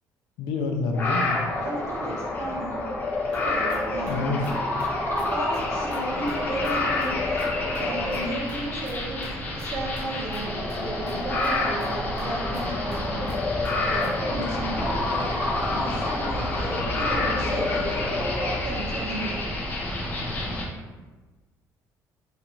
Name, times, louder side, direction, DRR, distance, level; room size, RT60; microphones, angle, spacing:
voice 1, 0.4-1.4 4.0-4.4, left 4 dB, 80° left, 3 dB, 0.4 m, -27 dB
sound 1, 0.9-20.6, left 2 dB, 30° left, 0.5 m, -28 dB
voice 2, 1.6-2.8 3.3-4.4 5.1-7.1 7.8-9.2 9.5-13.3 13.8-19.4, right 1 dB, 45° right, -4 dB, 0.7 m, -34 dB
sound 2, 3.3-6.0 6.3-6.4 6.6-6.7 7.0-7.1 7.4-7.5 7.7-7.8 8.1-8.6 8.8-9.3 9.6-9.7 10.0-10.1 10.3-10.4 10.7-10.8 11.1-11.2 11.4-11.5 11.8-11.9 12.2-12.3 12.5-12.6 12.9-13.0 13.3-13.4 13.6-13.7 14.0-14.1, right 2 dB, 85° right, 1.0 m, -48 dB
2.5 x 2.2 x 2.9 m, 1.3 s
cardioid pair, 155°, 7 cm